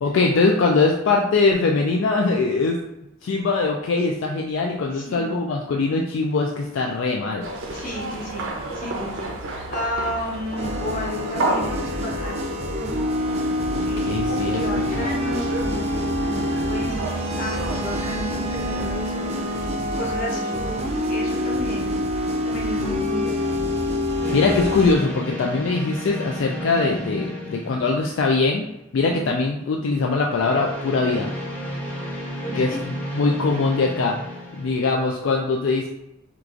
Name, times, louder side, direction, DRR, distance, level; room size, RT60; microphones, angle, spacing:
voice 1, 0.0-2.8 3.2-7.5 13.7-14.6 14.9-15.1 24.3-28.7 28.9-31.3 32.5-34.2 34.6-35.9, left 3 dB, 70° left, 1 dB, 0.3 m, -22 dB
voice 2, 4.9-5.4 7.7-12.5 13.8-19.6 19.9-20.6 21.1-22.0 22.4-23.6 29.0-29.3 32.4-32.7, equal, 40° left, -3 dB, 0.9 m, -33 dB
sound 1, 7.4-19.7, right 2 dB, 75° right, 0.6 m, -32 dB
sound 2, 10.6-24.9, left 1 dB, 30° right, 0.4 m, -26 dB
sound 3, 24.2-28.7 30.2-35.0, equal, 10° left, 0.6 m, -32 dB
4.5 x 2.4 x 2.5 m, 0.88 s
head